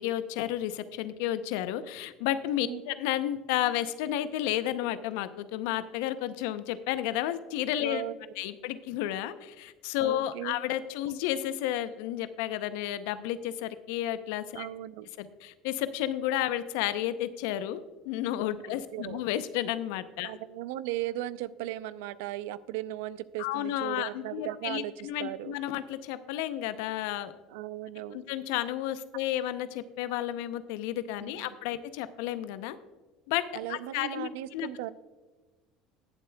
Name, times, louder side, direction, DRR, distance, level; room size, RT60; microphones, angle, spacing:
voice 1, 0.0-8.0 8.4-14.7 15.2-20.3 23.4-27.3 28.1-32.8 33.3-33.4 33.7-34.7, left 12 dB, 75° left, 13 dB, 0.6 m, -32 dB
voice 2, 7.8-8.3 10.0-10.6 14.6-15.1 18.6-19.2 20.2-25.5 27.5-28.2 31.2-31.6 33.5-34.9, right 14 dB, 75° right, 16 dB, 0.4 m, -37 dB
19.5 x 7.5 x 2.3 m, 1.3 s
hypercardioid pair, 75°, 0 cm